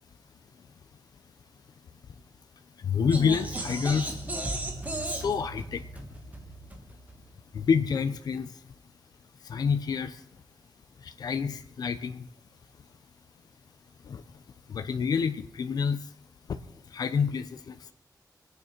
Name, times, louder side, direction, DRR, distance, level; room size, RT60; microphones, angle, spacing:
voice 1, 2.8-4.1 5.1-5.8 7.5-8.5 9.5-10.1 11.2-12.2 14.1-14.2 14.7-16.0 16.9-17.9, left 6 dB, 70° left, 9 dB, 0.9 m, -28 dB
sound 1, 3.1-7.3, right 1 dB, 20° right, 1.8 m, -35 dB
25.0 x 9.4 x 4.6 m, 0.70 s
wide cardioid pair, 175°, 7 cm